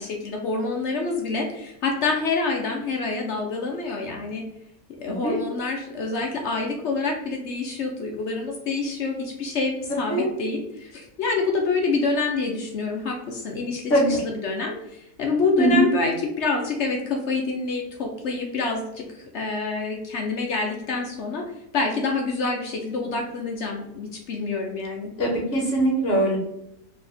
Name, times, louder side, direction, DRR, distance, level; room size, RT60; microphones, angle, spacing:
voice 1, 0.0-4.4 5.0-21.4 21.7-25.1, left 3 dB, 70° left, 1 dB, 0.6 m, -27 dB
voice 2, 5.1-5.4 10.1-10.3 13.9-14.2 15.6-15.9 25.2-26.4, right 1 dB, 45° left, -5 dB, 1.8 m, -21 dB
4.2 x 2.8 x 3.4 m, 0.81 s
omnidirectional pair, 1.8 m